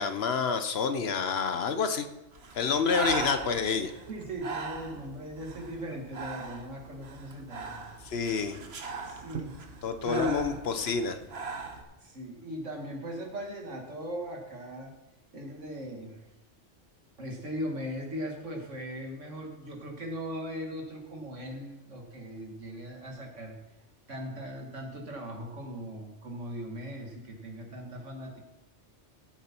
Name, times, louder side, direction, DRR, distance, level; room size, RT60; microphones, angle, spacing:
voice 1, 0.0-2.1 2.5-3.9 8.0-8.6 9.8-11.2, left 5 dB, 60° left, 9 dB, 1.0 m, -28 dB
Breathing, 2.3-11.8, right 4 dB, 60° right, 1.3 m, -39 dB
voice 2, 4.1-7.8 9.0-9.5 10.0-10.6 12.0-14.9 15.3-16.2 17.2-23.6 24.1-28.4, equal, 85° right, 2 dB, 2.2 m, -38 dB
15.5 x 7.1 x 4.4 m, 1.0 s
omnidirectional pair, 1.2 m